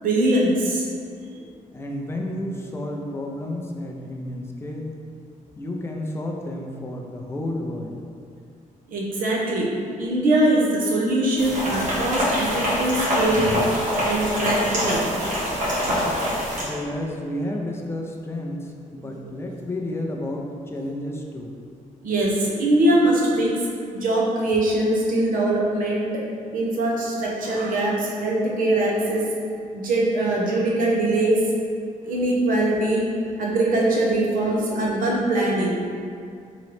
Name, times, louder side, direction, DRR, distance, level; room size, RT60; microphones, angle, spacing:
voice 1, 0.0-0.9 8.9-9.7 10.0-13.6 14.0-15.1 19.0-19.3 22.0-23.6 23.9-26.1 26.5-29.3 29.7-31.5 32.1-33.1 33.4-35.8, right 1 dB, 80° right, -3 dB, 0.8 m, -22 dB
voice 2, 1.7-5.0 5.6-8.0 16.7-21.5, left 1 dB, 20° left, 0 dB, 0.4 m, -31 dB
sound 1, 11.4-16.6, equal, 65° right, 1.2 m, -24 dB
3.8 x 3.0 x 3.2 m, 2.3 s
cardioid pair, 140°, 14 cm